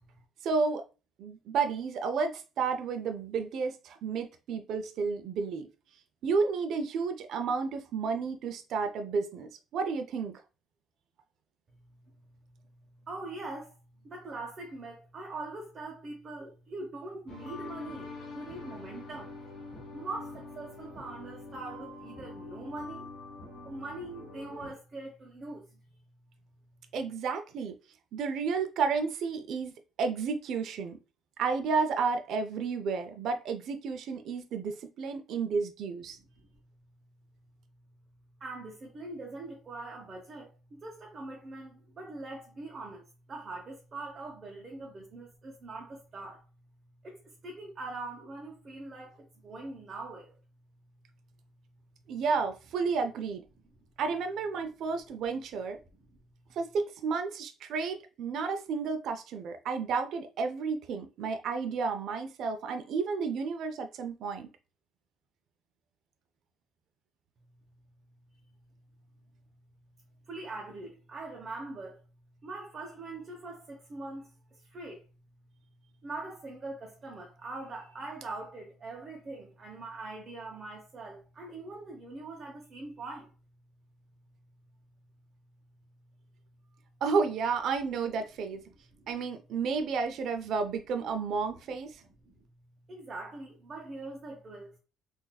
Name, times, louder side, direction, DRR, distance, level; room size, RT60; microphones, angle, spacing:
voice 1, 0.4-0.9 1.2-5.7 6.2-10.4 26.9-27.7 28.1-29.7 30.0-31.0 31.4-36.2 52.1-53.4 54.0-55.8 56.5-64.5 87.0-88.6 89.1-92.0, right 5 dB, 60° right, 0.4 m, -31 dB
voice 2, 13.1-13.7 14.0-19.3 19.9-23.1 23.6-25.7 36.2-36.5 38.4-46.4 47.0-50.4 70.3-72.0 72.4-74.3 74.7-75.0 76.0-83.3 88.9-89.1 92.2-92.3 92.9-94.7, right 2 dB, 30° right, 0.8 m, -42 dB
sound 1, 17.3-24.7, left 3 dB, 45° left, 1.6 m, -45 dB
3.9 x 2.5 x 2.3 m
cardioid pair, 130°, 0 cm